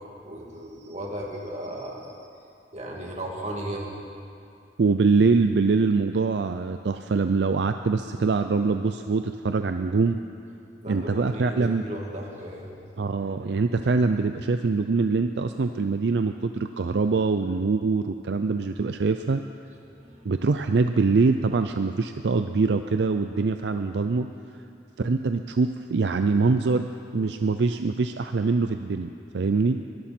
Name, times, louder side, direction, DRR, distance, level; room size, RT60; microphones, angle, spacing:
voice 1, 0.2-2.2 2.7-3.9 10.8-12.7 19.9-20.3, right 1 dB, 40° right, -2 dB, 2.5 m, -35 dB
voice 2, 4.8-10.2 10.9-11.8 13.0-19.4 20.2-24.3 25.0-29.1 29.3-29.8, right 4 dB, 70° right, 8 dB, 0.5 m, -24 dB
24.0 x 13.0 x 4.4 m, 2.5 s
head